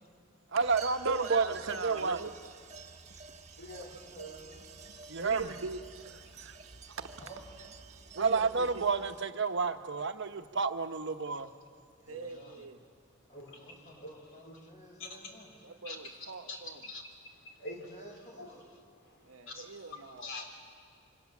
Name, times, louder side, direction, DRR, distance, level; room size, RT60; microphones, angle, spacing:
voice 1, 0.5-1.4 1.8-2.2 5.1-5.4 8.2-11.5, right 4 dB, 60° right, 8 dB, 1.1 m, -30 dB
sound 1, 0.6-9.2, right 4 dB, 35° right, 1.3 m, -50 dB
voice 2, 1.0-2.3 5.2-7.2 8.1-8.9 12.1-12.8 15.6-16.8 19.2-20.5, right 4 dB, 90° right, 6 dB, 1.2 m, -41 dB
voice 3, 3.6-4.6 7.2-7.4 12.0-12.7 13.3-15.5 17.6-18.6, left 1 dB, 35° left, 0 dB, 6.0 m, -54 dB
voice 4, 15.0-15.3 15.8-18.1 18.4-18.5 19.1-19.7 20.2-20.5, left 2 dB, 65° left, 3 dB, 3.5 m, -45 dB
28.0 x 25.0 x 7.3 m, 2.2 s
head